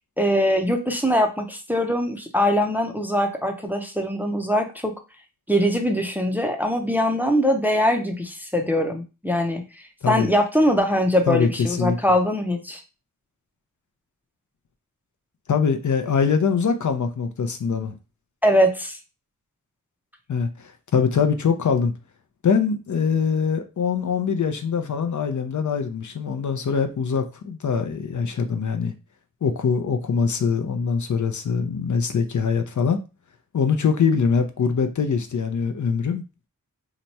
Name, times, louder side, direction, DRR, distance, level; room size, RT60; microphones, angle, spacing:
voice 1, 0.2-4.9 5.5-12.8 18.4-19.0, equal, 5° right, 0.5 m, -22 dB
voice 2, 11.3-12.0 15.5-17.9 20.3-21.9 22.4-28.9 29.4-33.0 33.5-36.2, left 6 dB, 60° left, 0.5 m, -23 dB
2.9 x 2.2 x 4.0 m
wide cardioid pair, 100°, 34 cm